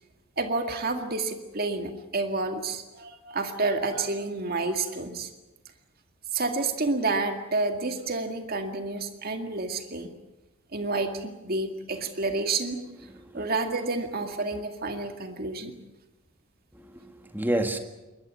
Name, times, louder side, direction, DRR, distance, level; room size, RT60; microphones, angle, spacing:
voice 1, 0.4-5.3 6.3-10.1 10.7-12.8 13.3-15.8, right 3 dB, 40° right, 5 dB, 2.1 m, -29 dB
voice 2, 13.1-13.5 14.9-15.0 16.7-17.8, right 1 dB, 10° right, 6 dB, 1.8 m, -30 dB
22.5 x 20.0 x 8.5 m, 1.1 s
head